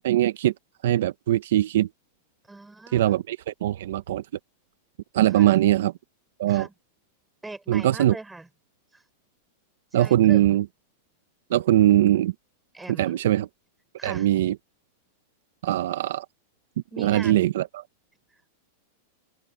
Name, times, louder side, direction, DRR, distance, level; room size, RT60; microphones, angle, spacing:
voice 1, 0.0-0.5 0.8-1.9 2.9-4.2 5.1-5.9 6.4-6.7 7.7-8.2 9.9-10.7 11.5-12.3 12.9-13.5 14.0-14.6 15.6-16.3 17.0-17.8, right 13 dB, 75° right, 0.8 m, -21 dB
voice 2, 2.5-3.1 5.3-5.5 6.5-6.7 7.4-8.5 8.9-9.0 9.9-10.5 12.7-13.2 14.0-14.3 16.9-17.4, right 2 dB, 5° right, 6.0 m, -41 dB
open air
supercardioid pair, 150°, 0 cm